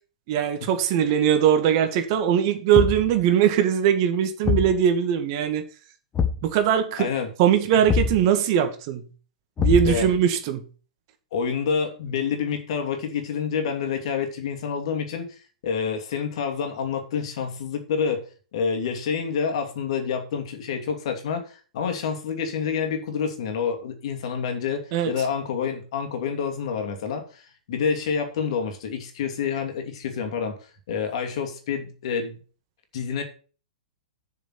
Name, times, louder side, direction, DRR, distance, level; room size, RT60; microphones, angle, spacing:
voice 1, 0.3-5.6 6.4-7.1 7.4-9.1 9.6-10.6 24.9-25.1, right 9 dB, 45° right, 2.1 m, -21 dB
Thump thud, 2.7-3.2 4.4-4.8 6.1-6.5 7.9-8.2 9.6-10.2, left 6 dB, 20° left, 1.3 m, -23 dB
voice 2, 7.0-7.3 7.7-7.8 9.8-10.1 11.3-18.2 18.5-27.4 27.7-30.6 30.9-32.4 32.9-33.2, left 6 dB, 60° left, 2.8 m, -28 dB
7.2 x 6.7 x 7.8 m
hypercardioid pair, 115°, 4 cm